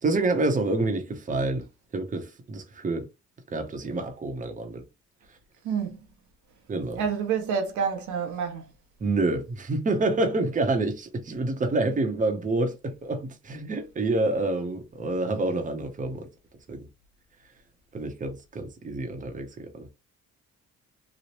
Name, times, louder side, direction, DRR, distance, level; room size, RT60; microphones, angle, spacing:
voice 1, 0.0-1.7 1.9-3.1 3.5-4.8 6.7-7.0 9.0-16.3 16.7-16.9 17.9-19.9, right 2 dB, 25° right, 0.7 m, -28 dB
voice 2, 5.6-6.0 7.0-8.7, right 6 dB, 75° right, 0.8 m, -28 dB
3.1 x 2.0 x 2.9 m
cardioid pair, 90°, 30 cm